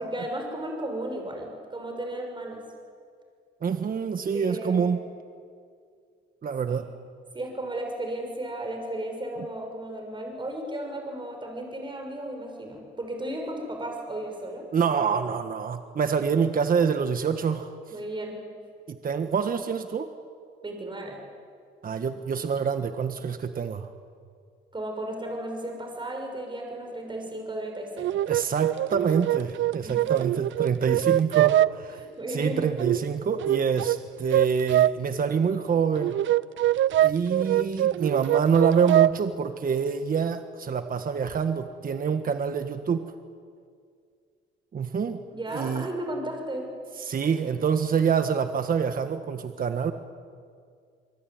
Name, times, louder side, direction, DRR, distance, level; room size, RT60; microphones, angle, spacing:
voice 1, 0.0-2.6 4.3-4.9 7.3-14.7 17.9-18.4 20.6-21.2 24.7-28.1 29.8-30.2 31.9-32.7 45.3-46.7, right 1 dB, 25° right, 2 dB, 6.3 m, -34 dB
voice 2, 3.6-5.0 6.4-6.9 14.7-17.7 18.9-20.1 21.8-23.9 28.3-32.0 32.3-36.1 37.0-43.0 44.7-45.2 45.5-45.9 47.0-49.9, right 6 dB, 45° right, 8 dB, 1.5 m, -26 dB
sound 1, 28.0-31.7 32.8-33.0 33.4-34.0 34.3-34.9 36.0-39.1, right 13 dB, 70° right, 0.6 m, -23 dB
25.5 x 23.5 x 9.5 m, 2.2 s
cardioid pair, 90°, 20 cm